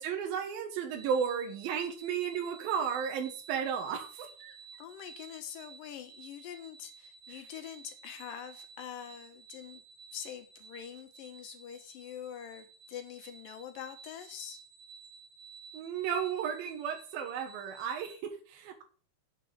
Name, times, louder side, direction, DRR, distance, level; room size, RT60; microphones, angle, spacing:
voice 1, 0.0-4.5 15.7-18.8, right 7 dB, 80° right, 3 dB, 3.0 m, -34 dB
sound 1, 0.9-18.2, right 6 dB, 40° right, 1.6 m, -53 dB
voice 2, 4.8-9.8 10.1-14.6, left 9 dB, 75° left, 7 dB, 2.8 m, -45 dB
8.2 x 6.8 x 6.8 m, 0.39 s
omnidirectional pair, 4.2 m